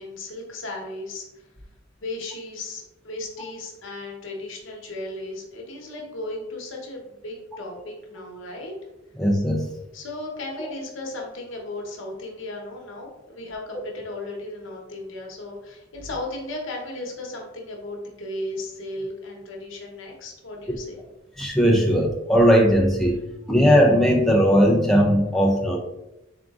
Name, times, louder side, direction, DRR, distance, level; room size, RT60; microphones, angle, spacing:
voice 1, 0.0-1.5 2.0-8.7 9.9-21.0, left 2 dB, 75° left, 0 dB, 0.9 m, -35 dB
voice 2, 9.2-9.7 20.7-20.8 21.4-23.2 23.5-25.8, equal, ahead, -2 dB, 0.3 m, -18 dB
3.7 x 3.6 x 2.4 m, 0.95 s
head